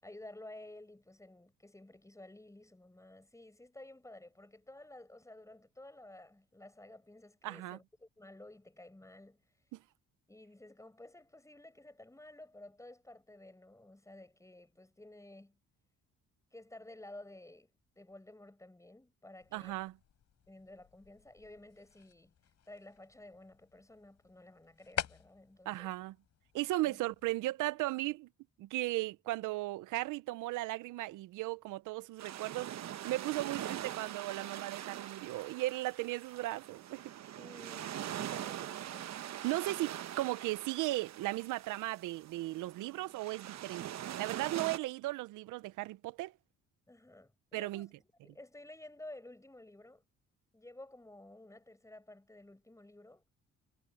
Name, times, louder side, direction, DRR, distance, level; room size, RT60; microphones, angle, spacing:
voice 1, 0.0-9.4 10.3-15.6 16.5-19.8 20.5-22.4 22.7-26.0 26.8-27.0 37.4-39.2 44.5-44.8 46.9-50.0 50.5-53.2, left 1 dB, 10° left, 6.8 m, -53 dB
voice 2, 7.4-7.8 9.7-9.8 19.5-19.9 25.7-26.1 26.5-28.3 28.6-37.0 39.4-46.3 47.5-47.9, right 18 dB, 90° right, 0.7 m, -36 dB
sound 1, 19.4-27.3, left 10 dB, 65° left, 4.4 m, -47 dB
sound 2, 32.2-44.8, right 11 dB, 65° right, 1.0 m, -43 dB
cardioid pair, 90°, 30 cm